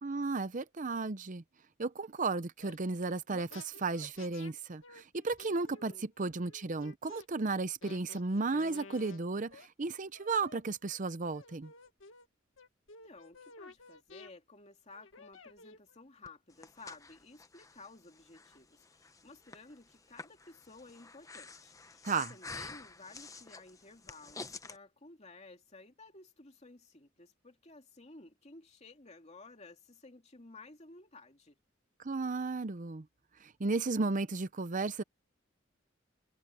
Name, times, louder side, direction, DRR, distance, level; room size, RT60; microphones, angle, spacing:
voice 1, 0.0-1.4 1.8-11.7 22.0-22.3 32.0-33.0 33.4-35.0, right 3 dB, 40° right, 0.7 m, -34 dB
sound 1, 2.6-2.8 3.3-4.5 4.8-7.2 7.8-9.2 9.5-9.7 10.1-11.0 11.3-12.3 12.6-14.3 14.9-16.0, left 3 dB, 85° left, 1.9 m, -53 dB
voice 2, 5.8-6.3 13.0-31.6, left 3 dB, 35° left, 2.6 m, -55 dB
Breathing, 16.3-24.8, left 3 dB, 15° left, 0.9 m, -49 dB
head